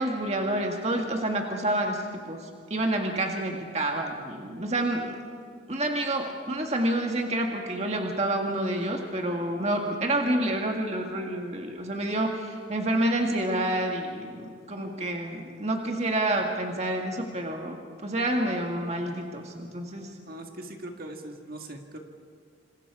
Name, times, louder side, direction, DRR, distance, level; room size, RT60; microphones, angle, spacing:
voice 1, 0.0-5.2 5.7-20.1, right 1 dB, 35° right, 2 dB, 1.8 m, -28 dB
voice 2, 20.3-22.0, right 1 dB, 50° right, 3 dB, 2.0 m, -40 dB
27.5 x 27.0 x 4.9 m, 2.2 s
head